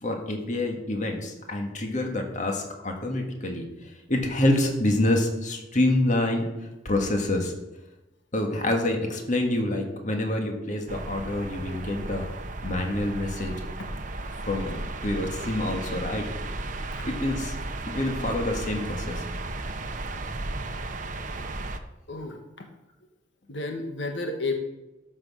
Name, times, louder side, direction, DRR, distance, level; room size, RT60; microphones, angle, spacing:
voice 1, 0.0-6.5 6.8-7.5 8.3-12.3 12.6-13.6 14.4-16.3 17.1-17.5 17.9-19.2, left 1 dB, 45° left, 3 dB, 1.8 m, -27 dB
sound 1, 10.9-21.8, right 2 dB, 45° right, 0.8 m, -34 dB
voice 2, 22.1-22.7 23.5-24.6, left 3 dB, 85° left, 4 dB, 1.4 m, -32 dB
13.0 x 6.3 x 6.3 m, 1.0 s
head